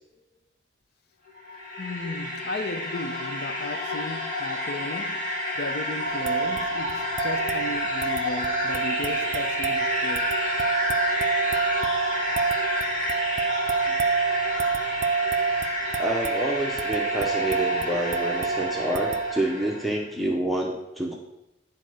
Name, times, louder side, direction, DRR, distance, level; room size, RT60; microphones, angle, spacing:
sound 1, 1.3-19.9, left 1 dB, 45° left, 1.9 m, -30 dB
voice 1, 1.8-10.3, left 2 dB, 60° left, 0.6 m, -35 dB
sound 2, 6.0-19.4, right 5 dB, 40° right, 0.3 m, -28 dB
voice 2, 16.0-21.2, right 1 dB, ahead, 0.7 m, -28 dB
8.9 x 4.2 x 6.3 m
head